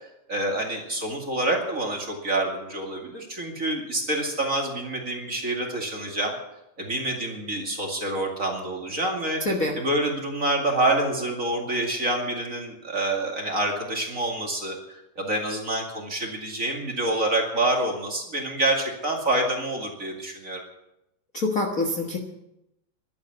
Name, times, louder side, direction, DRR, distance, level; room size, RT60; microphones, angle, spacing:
voice 1, 0.3-6.3 6.8-9.4 9.7-14.8 15.2-20.6, right 1 dB, 25° right, 1 dB, 2.1 m, -27 dB
voice 2, 9.4-9.8 21.3-22.2, left 2 dB, 80° left, 2 dB, 0.7 m, -25 dB
12.0 x 10.5 x 9.4 m, 0.88 s
omnidirectional pair, 4.0 m